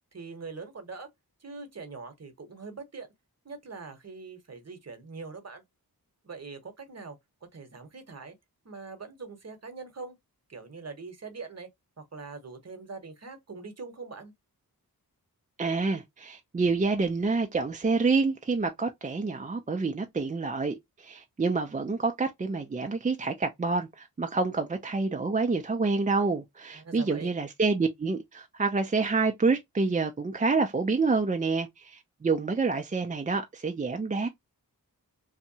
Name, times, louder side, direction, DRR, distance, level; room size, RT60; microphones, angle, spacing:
voice 1, 0.1-1.1 1.4-3.1 3.4-5.6 6.2-7.2 7.5-8.4 8.6-10.2 10.5-11.7 12.0-14.3 26.7-27.3, right 4 dB, 45° right, 0.9 m, -42 dB
voice 2, 15.6-34.3, right 4 dB, 20° right, 0.4 m, -28 dB
2.7 x 2.1 x 2.6 m
cardioid pair, 40°, 37 cm